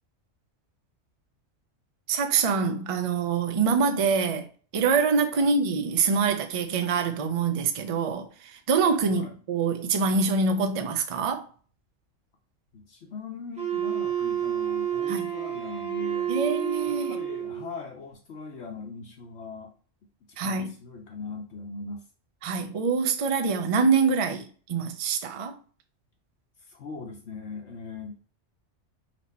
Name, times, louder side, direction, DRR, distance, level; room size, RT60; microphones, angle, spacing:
voice 1, 2.1-4.5 4.7-11.5 15.1-15.2 16.3-17.2 20.4-20.7 22.4-25.5, right 5 dB, 45° right, 0.4 m, -25 dB
voice 2, 9.0-9.3 12.7-16.3 16.9-19.7 20.3-22.1 26.6-28.2, left 4 dB, 65° left, 1.0 m, -40 dB
Wind instrument woodwind instrument, 13.6-17.7, right 10 dB, 5° right, 1.3 m, -29 dB
4.4 x 2.9 x 4.1 m
omnidirectional pair, 1.3 m